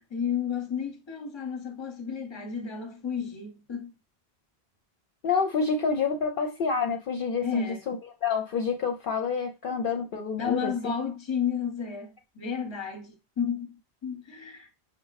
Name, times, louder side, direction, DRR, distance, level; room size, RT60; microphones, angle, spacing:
voice 1, 0.0-3.9 7.4-7.8 10.4-14.7, left 7 dB, 30° left, 0.8 m, -32 dB
voice 2, 5.2-8.0 8.2-10.7, left 5 dB, 60° left, 0.7 m, -28 dB
5.8 x 2.1 x 4.0 m
omnidirectional pair, 1.1 m